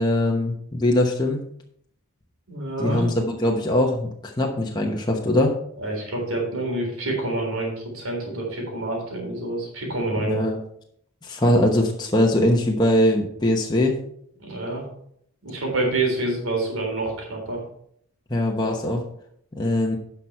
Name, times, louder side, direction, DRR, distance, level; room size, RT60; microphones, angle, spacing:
voice 1, 0.0-1.4 2.8-5.5 10.2-10.6 11.2-13.9 18.3-19.0 19.6-20.0, left 1 dB, 20° left, 0 dB, 0.9 m, -21 dB
voice 2, 2.5-3.0 5.8-10.4 14.4-14.8 15.4-17.6, right 2 dB, 80° right, 0 dB, 3.8 m, -27 dB
10.5 x 5.8 x 4.6 m, 0.69 s
head